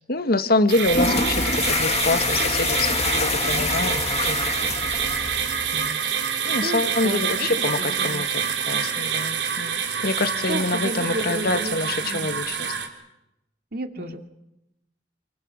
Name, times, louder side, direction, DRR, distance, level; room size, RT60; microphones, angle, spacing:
voice 1, 0.1-4.7 5.7-6.0 6.4-12.7 14.0-14.2, left 2 dB, 60° left, 10 dB, 1.5 m, -26 dB
sound 1, 0.7-12.9, right 7 dB, 85° right, 3.7 m, -27 dB
sound 2, 0.8-5.9, left 4 dB, 40° left, 1.9 m, -26 dB
voice 2, 6.6-8.2 10.5-11.8 12.0-12.4 13.7-14.3, right 1 dB, 60° right, 6 dB, 2.4 m, -32 dB
29.5 x 23.5 x 6.5 m, 0.88 s
head